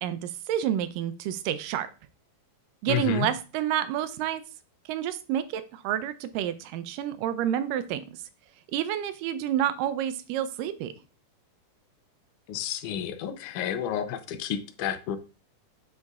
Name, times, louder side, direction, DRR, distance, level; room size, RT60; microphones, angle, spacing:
voice 1, 0.0-1.9 2.8-4.4 4.9-8.0 8.7-10.9, right 10 dB, 90° right, 12 dB, 2.3 m, -29 dB
voice 2, 2.9-3.3 12.5-15.2, left 10 dB, 75° left, 9 dB, 2.0 m, -30 dB
8.5 x 6.4 x 2.4 m, 0.33 s
omnidirectional pair, 3.8 m